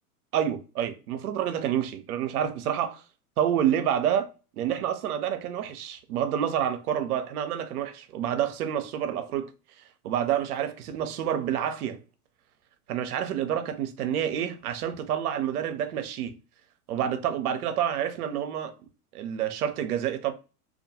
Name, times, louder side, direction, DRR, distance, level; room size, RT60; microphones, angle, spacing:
voice 1, 0.3-3.0 3.4-9.5 10.0-12.0 12.9-16.4 16.9-18.7 19.1-20.3, right 9 dB, 80° right, 0.6 m, -28 dB
2.3 x 2.2 x 2.7 m
hypercardioid pair, 105°, 45 cm